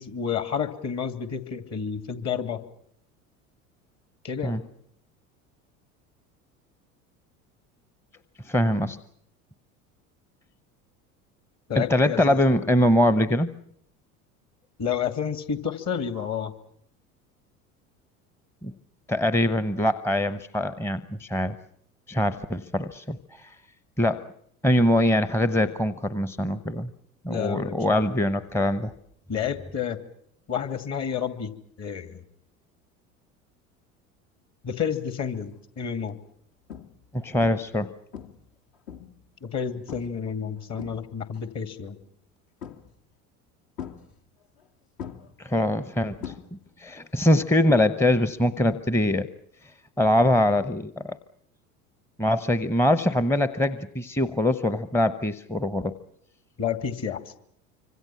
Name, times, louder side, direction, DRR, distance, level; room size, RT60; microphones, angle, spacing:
voice 1, 0.0-2.6 4.2-4.6 11.7-12.6 14.8-16.5 27.3-28.1 29.3-30.0 30.5-31.5 31.8-32.1 34.6-36.2 39.4-42.0 56.6-57.2, left 7 dB, 40° left, 10 dB, 2.6 m, -30 dB
voice 2, 8.4-9.0 11.7-13.5 18.6-18.7 19.1-21.5 22.1-23.5 24.0-24.2 24.6-26.9 27.2-28.9 37.1-37.9 45.4-46.3 46.8-49.3 50.0-51.2 52.2-55.9, left 1 dB, 5° left, 14 dB, 0.9 m, -23 dB
sound 1, 35.1-35.4 36.0-36.1 36.7-37.1 37.4-37.8 38.1-39.3 39.9-40.2 40.6-41.4 42.6-43.1 43.8-44.7 45.0-46.9 47.1-47.6 49.6-49.7, left 8 dB, 60° left, 2.4 m, -41 dB
25.5 x 25.5 x 6.0 m, 0.67 s
hypercardioid pair, 70°, 42 cm